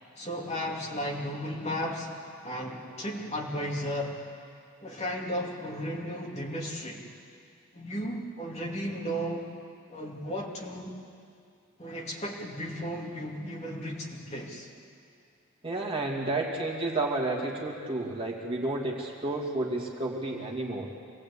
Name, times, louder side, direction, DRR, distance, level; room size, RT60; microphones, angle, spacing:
voice 1, 0.2-4.2 4.8-7.1 7.7-9.5 9.9-11.0 11.8-14.7, equal, 30° left, -2 dB, 2.5 m, -34 dB
voice 2, 15.6-20.9, right 2 dB, 25° right, -1 dB, 2.4 m, -31 dB
26.0 x 19.5 x 8.5 m, 2.5 s
head